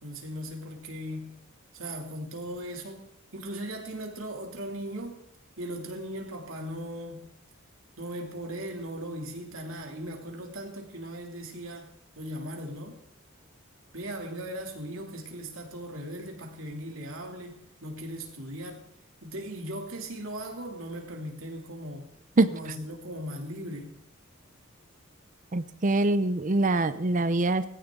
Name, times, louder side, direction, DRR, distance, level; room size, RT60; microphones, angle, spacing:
voice 1, 0.0-1.3 1.7-3.1 3.3-5.2 5.6-7.2 8.0-13.0 13.9-18.8 19.2-22.1 22.5-23.9, right 1 dB, 75° right, 2.7 m, -38 dB
voice 2, 25.5-27.6, right 2 dB, 40° right, 0.7 m, -24 dB
18.5 x 15.0 x 3.8 m
head